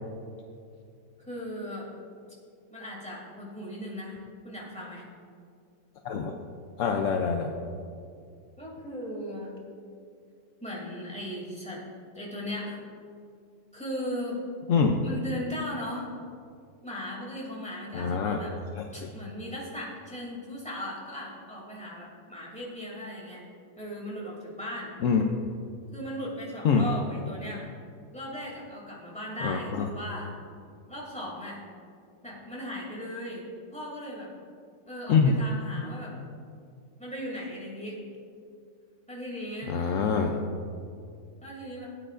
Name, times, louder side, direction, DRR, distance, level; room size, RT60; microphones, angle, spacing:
voice 1, 1.2-1.9 2.7-4.2 4.4-5.1 8.6-9.5 10.6-11.8 12.1-12.8 13.7-14.4 15.0-16.1 16.8-18.6 18.9-23.4 23.8-24.9 25.9-27.7 28.1-30.4 30.9-31.6 32.2-33.4 33.7-34.3 34.9-36.2 37.0-38.0 39.1-39.7 41.4-41.9, left 1 dB, 5° left, -5 dB, 2.6 m, -37 dB
voice 2, 6.8-7.5 14.7-15.0 17.9-18.4 18.8-19.1 25.0-25.2 26.6-26.9 29.4-29.9 35.1-35.4 39.7-40.4, left 5 dB, 65° left, 3 dB, 0.8 m, -25 dB
17.0 x 8.9 x 2.5 m, 2.3 s
omnidirectional pair, 1.9 m